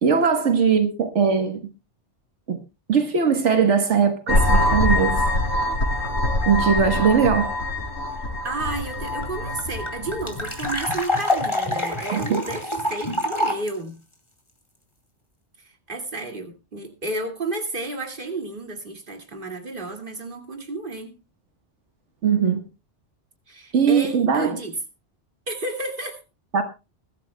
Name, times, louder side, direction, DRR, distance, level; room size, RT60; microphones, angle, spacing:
voice 1, 0.0-1.6 2.5-2.6 2.9-5.2 6.5-7.6 12.1-12.4 22.2-22.6 23.7-24.6 26.5-26.6, right 6 dB, 85° right, 1.6 m, -20 dB
sound 1, 4.3-11.0, left 1 dB, 70° left, 4.8 m, -24 dB
voice 2, 8.4-14.0 15.6-21.2 23.5-24.7 25.5-26.2, right 2 dB, 45° right, 2.3 m, -32 dB
sound 2, 8.9-9.0 9.2-9.3 9.6-13.7, left 1 dB, 25° left, 2.5 m, -26 dB
22.0 x 12.5 x 2.2 m
omnidirectional pair, 1.2 m